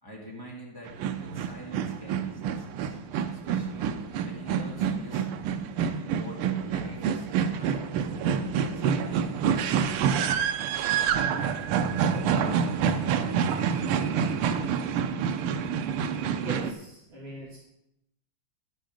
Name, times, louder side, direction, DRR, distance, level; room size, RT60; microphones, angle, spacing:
voice 1, 0.0-3.0 3.3-3.9 4.2-5.4 5.9-7.3 7.5-8.4 8.7-9.2, right 1 dB, 10° left, -4 dB, 2.1 m, -45 dB
sound 1, 0.9-16.7, right 7 dB, 90° right, 1.6 m, -27 dB
voice 2, 16.4-17.6, right 1 dB, 30° right, -8 dB, 2.6 m, -40 dB
11.0 x 6.5 x 5.1 m, 0.81 s
omnidirectional pair, 2.3 m